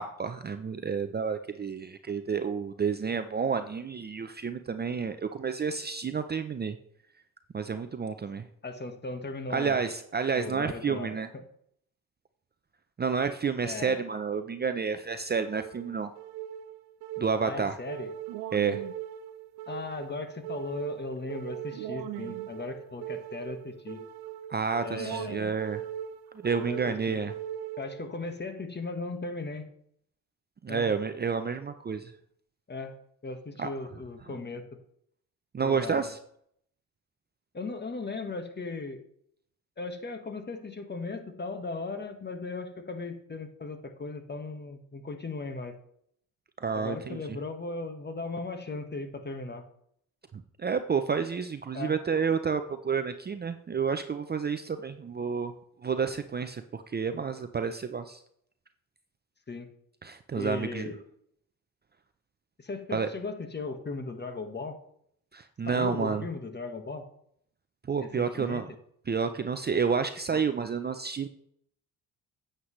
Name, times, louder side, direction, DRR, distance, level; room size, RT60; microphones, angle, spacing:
voice 1, 0.0-6.8 7.5-8.5 9.5-11.3 13.0-16.1 17.2-17.8 18.5-18.8 24.5-25.8 26.4-27.3 30.6-32.1 33.6-33.7 35.5-36.2 46.6-47.2 50.6-55.5 55.8-58.2 60.0-60.9 62.9-63.1 65.3-66.2 67.9-68.7 69.1-71.3, right 5 dB, 25° right, 9 dB, 0.6 m, -30 dB
voice 2, 8.6-9.8 10.3-11.4 13.6-14.0 17.4-18.1 19.7-24.1 24.8-25.5 26.6-27.2 27.8-29.7 30.7-30.9 32.7-32.9 33.2-34.7 35.6-36.1 37.5-39.0 39.8-45.7 46.7-49.6 51.7-51.9 59.5-59.7 60.3-61.0 62.6-64.8 65.6-67.1 68.0-68.6 70.3-70.4, left 3 dB, 25° left, 7 dB, 1.6 m, -37 dB
sound 1, 15.3-28.3, right 11 dB, 80° right, 0.8 m, -40 dB
9.3 x 8.2 x 3.2 m, 0.68 s
supercardioid pair, 70°, 39 cm